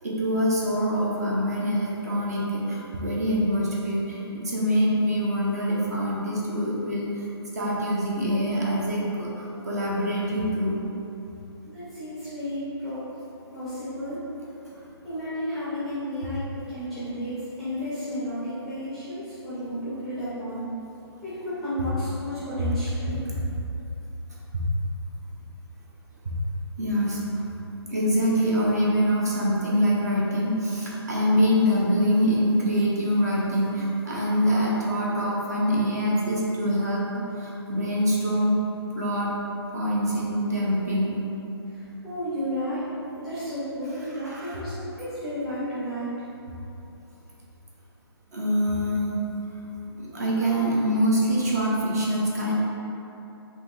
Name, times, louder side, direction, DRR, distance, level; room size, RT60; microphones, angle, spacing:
voice 1, 0.0-7.3 7.5-10.9 24.5-24.6 26.8-27.4 27.9-38.6 38.9-39.3 39.7-41.1 44.1-44.6 48.3-49.2 50.0-52.5, equal, 35° right, -5 dB, 0.7 m, -25 dB
voice 2, 11.7-13.0 13.5-14.2 14.7-20.6 21.2-23.2 41.7-42.8 43.1-46.1, equal, ahead, -13 dB, 0.6 m, -32 dB
5.5 x 2.7 x 3.1 m, 3.0 s
hypercardioid pair, 175°, 14 cm